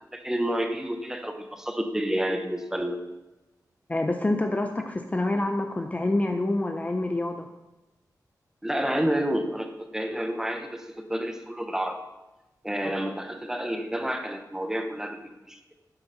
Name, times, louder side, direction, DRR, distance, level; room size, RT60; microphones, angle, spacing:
voice 1, 0.1-3.0 8.6-12.0 12.6-15.6, right 1 dB, 5° right, 6 dB, 1.0 m, -29 dB
voice 2, 3.9-7.5 12.8-12.9, left 2 dB, 20° left, 5 dB, 0.6 m, -27 dB
12.0 x 9.6 x 4.1 m, 1.0 s
wide cardioid pair, 175°, 7 cm